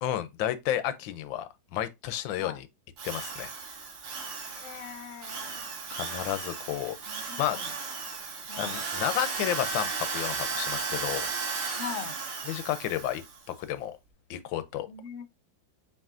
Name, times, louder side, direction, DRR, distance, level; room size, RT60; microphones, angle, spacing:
voice 1, 0.0-2.7 3.0-3.5 5.9-7.0 7.4-7.6 8.6-11.3 12.5-13.2 13.5-14.0 14.3-14.9, left 11 dB, 85° left, 1.3 m, -31 dB
Drill, 3.0-13.4, right 4 dB, 55° right, 1.6 m, -35 dB
voice 2, 4.5-5.7 7.1-7.7 8.5-8.8 11.8-12.1 14.9-15.3, left 7 dB, 65° left, 0.7 m, -41 dB
7.1 x 2.9 x 2.4 m
omnidirectional pair, 2.0 m